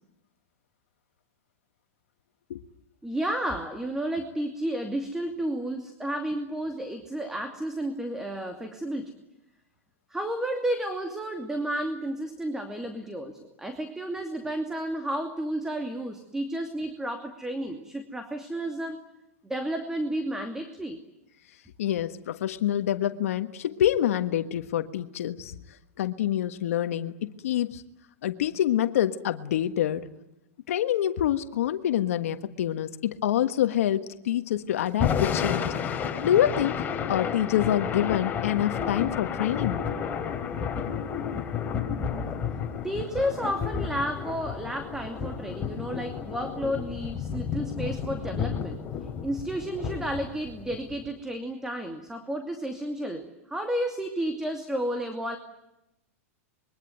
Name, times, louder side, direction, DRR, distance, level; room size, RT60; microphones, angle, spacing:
voice 1, 3.0-9.1 10.1-19.0 19.4-21.0 42.8-48.8 49.2-55.4, right 1 dB, 5° right, 6 dB, 2.6 m, -32 dB
voice 2, 21.8-25.5 26.0-27.8 28.2-30.1 30.7-35.7 36.2-39.8, left 11 dB, 75° left, 9 dB, 1.5 m, -26 dB
Thunder / Rain, 34.9-51.1, left 7 dB, 25° left, 3.7 m, -31 dB
26.0 x 23.0 x 9.3 m, 0.90 s
hypercardioid pair, 125°, 8 cm